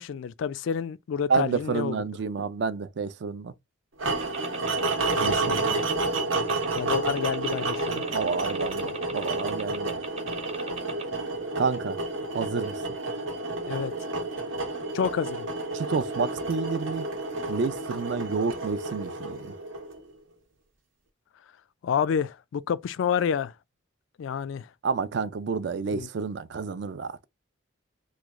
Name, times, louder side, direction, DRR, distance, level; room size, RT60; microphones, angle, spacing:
voice 1, 0.0-2.0 5.4-5.6 6.7-8.0 13.7-13.9 14.9-15.5 21.8-23.5 24.2-24.7 25.9-26.1, left 7 dB, 75° left, 0.3 m, -29 dB
voice 2, 1.3-3.5 5.2-5.8 8.1-10.1 11.6-12.0 12.3-12.8 15.7-17.1 17.5-19.5 24.8-27.2, right 5 dB, 60° right, 0.4 m, -29 dB
sound 1, 4.0-20.1, right 2 dB, 80° right, 0.8 m, -30 dB
sound 2, 4.2-11.0, right 4 dB, 30° right, 0.7 m, -38 dB
3.1 x 2.2 x 3.5 m
head